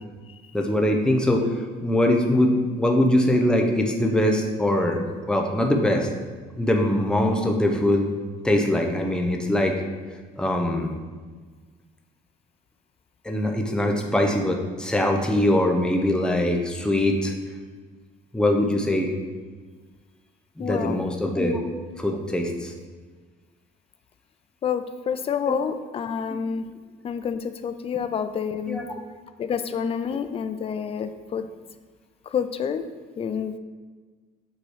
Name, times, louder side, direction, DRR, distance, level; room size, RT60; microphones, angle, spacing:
voice 1, 0.5-5.0 5.3-6.1 6.6-8.1 8.4-9.8 10.4-10.9 13.2-17.3 18.3-19.1 20.6-21.6 22.0-22.7 25.5-25.6 28.7-28.8, left 1 dB, 5° left, 2 dB, 0.8 m, -22 dB
voice 2, 20.6-21.0 21.4-21.5 24.6-26.7 27.0-28.8 29.4-31.5 32.3-32.9 33.2-33.6, left 7 dB, 35° left, 10 dB, 0.4 m, -28 dB
7.8 x 3.0 x 4.9 m, 1.4 s
cardioid pair, 110°, 17 cm